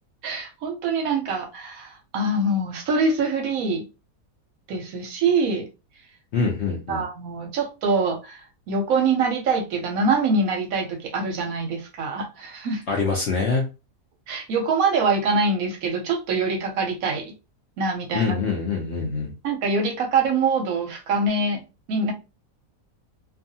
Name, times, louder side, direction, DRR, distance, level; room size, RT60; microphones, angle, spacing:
voice 1, 0.2-3.8 4.7-5.7 6.9-12.8 14.3-17.3 17.8-18.3 19.4-21.6 21.9-22.1, right 3 dB, 70° right, 1.0 m, -24 dB
voice 2, 6.3-7.0 12.9-13.6 18.1-19.3, left 4 dB, 65° left, 0.7 m, -24 dB
2.6 x 2.4 x 2.7 m
omnidirectional pair, 1.7 m